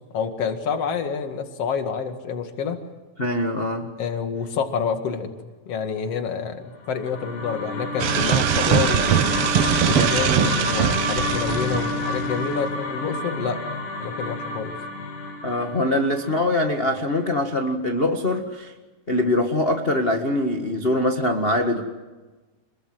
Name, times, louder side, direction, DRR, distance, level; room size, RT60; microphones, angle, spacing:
voice 1, 0.1-2.8 4.0-5.3 5.7-9.3 9.8-13.6 14.0-14.8, left 6 dB, 50° left, 6 dB, 3.0 m, -28 dB
voice 2, 3.2-3.9 15.4-18.7 19.1-21.8, left 1 dB, 25° left, 3 dB, 1.2 m, -23 dB
sound 1, 6.8-17.1, left 2 dB, 70° left, 4.0 m, -29 dB
sound 2, 8.0-12.4, right 10 dB, 65° right, 1.4 m, -22 dB
27.0 x 22.5 x 7.8 m, 1.2 s
omnidirectional pair, 3.7 m